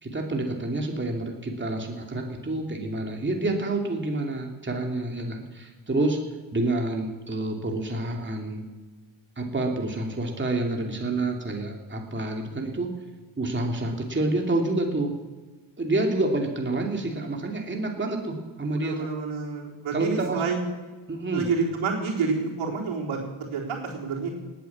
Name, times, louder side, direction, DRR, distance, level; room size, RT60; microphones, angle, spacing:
voice 1, 0.0-6.2 6.5-8.6 9.4-12.9 13.4-15.1 15.8-19.1 19.9-20.4 21.1-21.5, right 2 dB, 25° right, 1 dB, 2.9 m, -28 dB
voice 2, 18.7-20.6 21.3-24.3, right 4 dB, 75° right, -1 dB, 4.0 m, -28 dB
18.0 x 9.6 x 7.4 m, 1.3 s
supercardioid pair, 60°, 48 cm